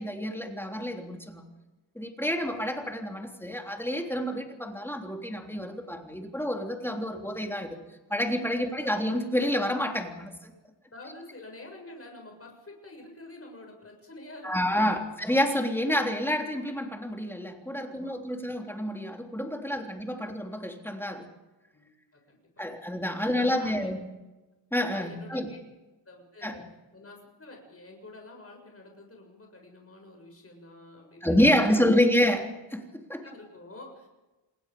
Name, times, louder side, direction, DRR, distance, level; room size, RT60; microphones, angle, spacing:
voice 1, 0.0-1.4 1.9-7.8 8.1-10.5 14.4-21.3 22.6-24.0 24.7-25.5 26.4-26.6 31.2-33.2, left 1 dB, 5° left, 2 dB, 3.3 m, -28 dB
voice 2, 10.9-14.9 17.7-18.3 19.6-19.8 20.1-20.2 21.7-22.6 23.1-23.9 24.9-25.6 26.1-26.6 26.9-31.8 33.2-34.1, left 2 dB, 30° left, 2 dB, 7.1 m, -48 dB
28.0 x 20.5 x 5.4 m, 1.1 s
wide cardioid pair, 110°, 46 cm